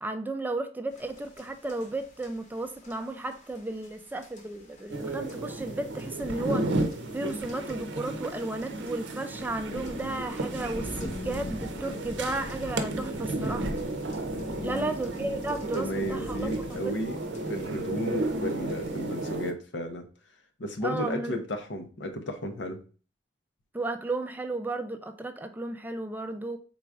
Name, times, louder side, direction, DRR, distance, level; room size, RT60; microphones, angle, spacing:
voice 1, 0.0-13.7 14.6-16.9 20.8-21.4 23.7-26.6, right 2 dB, 10° right, 0.3 m, -34 dB
sound 1, 0.9-19.4, left 1 dB, 40° left, 0.9 m, -45 dB
sound 2, 4.9-19.5, right 2 dB, 80° right, 0.6 m, -33 dB
voice 2, 14.5-14.9 15.6-17.2 17.5-20.1 20.6-22.8, equal, 85° left, 0.8 m, -33 dB
3.9 x 2.4 x 4.5 m
head